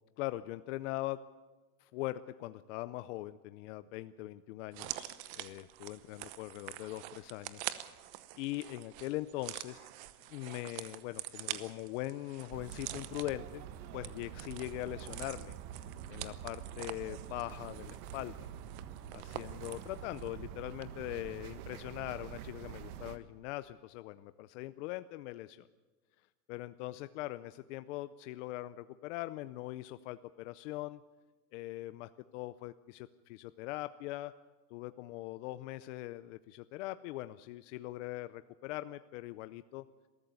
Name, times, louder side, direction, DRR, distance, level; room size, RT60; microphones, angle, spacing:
voice 1, 0.2-1.2 1.8-7.6 8.4-9.9 10.3-13.7 13.9-15.6 16.1-18.5 19.1-25.7 26.5-31.0 31.5-34.3 34.7-39.8, left 16 dB, 55° left, 13 dB, 0.6 m, -41 dB
sound 1, 4.7-20.4 20.7-20.8, right 15 dB, 50° right, 1.0 m, -46 dB
sound 2, 12.5-23.2, right 9 dB, 75° right, 1.6 m, -46 dB
21.0 x 14.0 x 9.1 m, 1.3 s
supercardioid pair, 170°, 45 cm